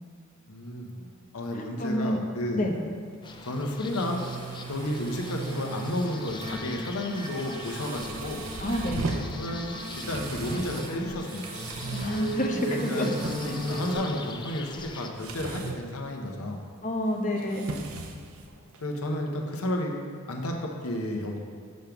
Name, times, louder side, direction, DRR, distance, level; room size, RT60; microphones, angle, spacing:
voice 1, 0.5-0.9 1.3-2.6 3.4-4.3 4.7-8.4 9.3-9.8 10.1-11.6 12.7-13.1 13.4-16.6 18.8-19.9 20.3-21.4, left 1 dB, 85° left, 2 dB, 0.9 m, -32 dB
voice 2, 1.5-2.2 2.5-2.8 8.6-9.1 11.9-13.1 16.8-17.7, left 1 dB, 35° left, 2 dB, 0.8 m, -28 dB
sound 1, 2.7-18.9, right 3 dB, 85° right, 0.8 m, -39 dB
sound 2, 3.2-15.1, left 4 dB, 20° left, 0.4 m, -44 dB
sound 3, 4.8-13.9, right 1 dB, 25° right, 2.0 m, -38 dB
6.4 x 5.2 x 5.9 m, 2.2 s
head